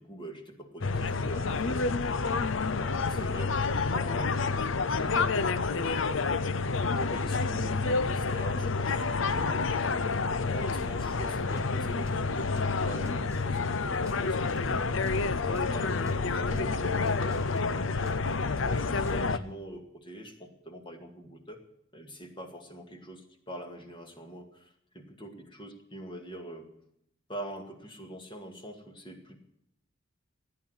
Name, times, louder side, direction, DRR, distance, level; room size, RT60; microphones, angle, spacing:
voice 1, 0.0-2.3 2.8-6.2 7.0-9.7 10.5-15.0 15.5-18.2 18.7-21.6 21.9-26.7 27.3-29.4, right 1 dB, 25° left, 5 dB, 2.1 m, -44 dB
sound 1, 0.8-19.4, left 4 dB, 80° left, 0.7 m, -29 dB
sound 2, 11.6-11.8 12.1-12.3 12.6-12.8 13.1-14.8 15.1-15.2 15.6-15.8 16.1-16.3 16.6-16.8 17.1-18.6 19.1-19.5, right 1 dB, 15° right, 1.6 m, -46 dB
16.5 x 9.7 x 8.1 m, 0.78 s
head